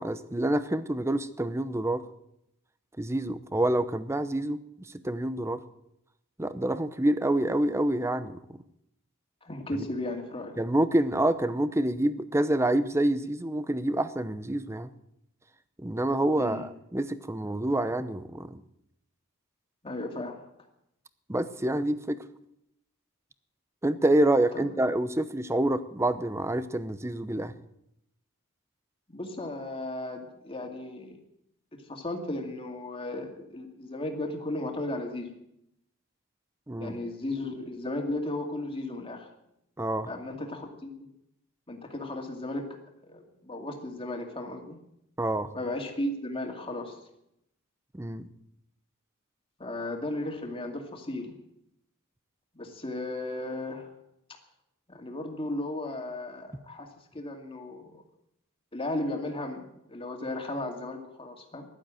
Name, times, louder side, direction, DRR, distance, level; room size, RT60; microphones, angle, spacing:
voice 1, 0.0-2.0 3.0-4.6 5.0-5.6 6.4-8.6 10.6-14.9 15.8-18.6 21.3-22.2 23.8-27.5 36.7-37.0 39.8-40.1 45.2-45.5 47.9-48.3, right 1 dB, 10° right, 13 dB, 0.7 m, -27 dB
voice 2, 9.4-10.6 16.4-16.7 19.8-20.4 24.5-24.7 29.1-31.2 31.9-35.3 36.8-39.3 40.1-41.1 41.7-42.7 43.0-44.8 45.5-47.0 49.6-51.3 52.5-53.9 54.9-56.9 57.1-58.0 58.7-61.7, left 1 dB, 25° left, 3 dB, 2.3 m, -35 dB
15.0 x 11.5 x 7.7 m, 0.79 s
head